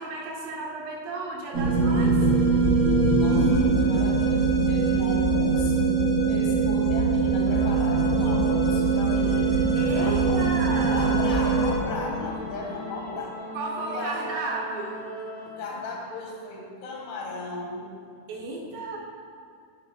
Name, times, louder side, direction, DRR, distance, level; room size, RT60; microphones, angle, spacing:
voice 1, 0.0-2.2 9.8-11.2 13.5-15.0 18.3-19.0, right 3 dB, 75° right, -2 dB, 3.1 m, -33 dB
sound 1, 1.5-11.7, right 4 dB, 30° right, 1.9 m, -22 dB
voice 2, 3.1-9.6 10.0-10.5 10.9-13.5 13.8-14.3 15.5-17.9, left 2 dB, 90° left, -2 dB, 4.0 m, -35 dB
sound 2, 7.4-15.5, left 1 dB, 60° left, 4.3 m, -39 dB
18.0 x 7.1 x 2.3 m, 2.4 s
omnidirectional pair, 5.2 m